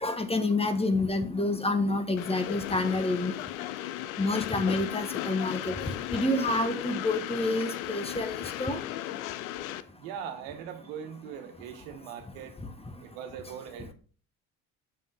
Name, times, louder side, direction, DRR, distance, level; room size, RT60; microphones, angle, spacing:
voice 1, 0.0-3.3 4.2-5.7 6.1-8.8, left 2 dB, 15° left, 8 dB, 1.2 m, -28 dB
Train, 2.2-9.8, left 14 dB, 90° left, 0.6 m, -36 dB
voice 2, 10.0-12.5 13.0-13.9, right 8 dB, 80° right, 7 dB, 1.3 m, -40 dB
7.4 x 5.6 x 3.9 m, 0.40 s
hypercardioid pair, 65°, 40 cm